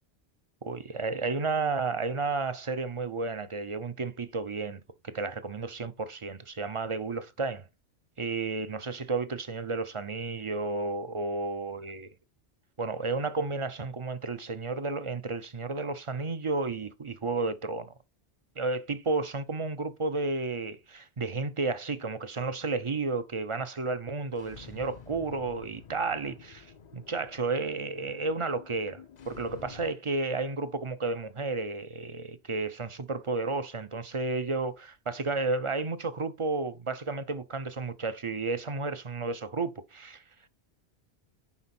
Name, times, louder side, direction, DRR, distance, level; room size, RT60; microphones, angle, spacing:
voice 1, 0.6-7.6 8.2-12.1 12.8-17.9 18.6-40.2, right 3 dB, 35° right, 0.6 m, -32 dB
sound 1, 24.3-29.9, left 7 dB, 50° left, 0.6 m, -50 dB
9.8 x 4.2 x 4.2 m
omnidirectional pair, 1.1 m